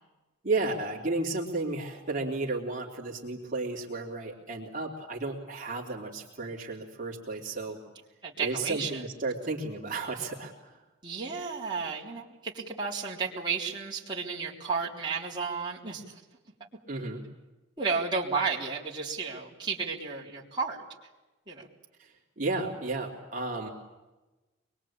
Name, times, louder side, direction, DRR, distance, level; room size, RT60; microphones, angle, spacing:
voice 1, 0.4-7.8 8.4-10.8 16.9-17.2 22.0-23.7, right 3 dB, 40° right, -3 dB, 3.3 m, -33 dB
voice 2, 8.2-9.0 11.0-16.2 17.8-20.8 21.5-21.7, right 5 dB, 20° right, -5 dB, 3.7 m, -33 dB
24.5 x 22.5 x 8.8 m, 1.1 s
head